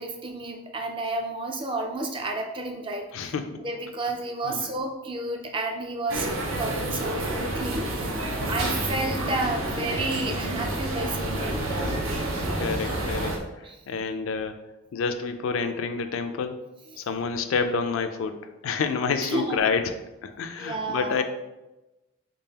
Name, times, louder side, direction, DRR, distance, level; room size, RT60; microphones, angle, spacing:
voice 1, 0.0-3.3 3.6-7.9 8.5-11.7 13.6-13.8 19.2-19.6 20.6-21.2, right 2 dB, 25° right, 3 dB, 0.4 m, -31 dB
voice 2, 3.1-3.6 4.1-4.2 4.4-4.7 12.6-14.6 14.9-16.6 17.0-21.2, left 5 dB, 75° left, 8 dB, 0.4 m, -29 dB
sound 1, 6.1-13.4, right 1 dB, 75° right, 0.7 m, -29 dB
3.8 x 3.5 x 2.8 m, 1.0 s
head